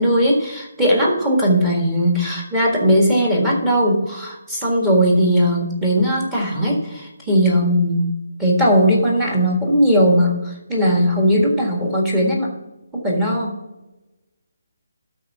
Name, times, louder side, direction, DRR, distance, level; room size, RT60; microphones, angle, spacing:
voice 1, 0.0-8.1 8.4-12.5 12.9-13.5, equal, 5° right, -3 dB, 1.6 m, -18 dB
12.0 x 4.4 x 5.9 m, 0.99 s
hypercardioid pair, 170°, 0 cm